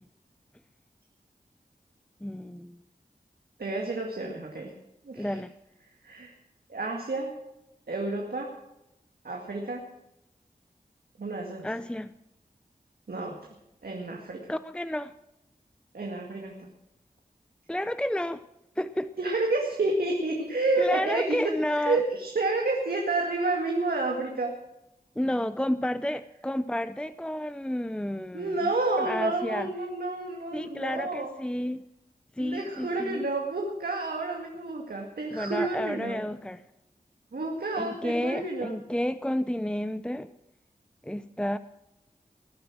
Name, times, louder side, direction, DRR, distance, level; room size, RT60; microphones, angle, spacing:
voice 1, 2.2-2.8 5.2-5.5 11.6-12.1 14.5-15.1 17.7-18.4 18.8-19.1 20.8-22.0 25.2-28.7 29.0-29.7 30.5-31.8 32.4-33.2 35.3-36.6 37.8-40.3 41.0-41.6, left 1 dB, 5° left, 12 dB, 0.6 m, -31 dB
voice 2, 3.6-4.7 5.0-5.4 6.0-6.3 6.7-7.4 7.9-8.5 9.2-9.8 11.2-11.7 13.1-13.4 13.8-14.4 15.9-16.5 19.2-24.6 28.3-31.3 32.4-36.2 37.3-38.7, right 2 dB, 80° right, 1 dB, 2.2 m, -30 dB
19.0 x 10.0 x 6.2 m, 0.89 s
cardioid pair, 45°, 15 cm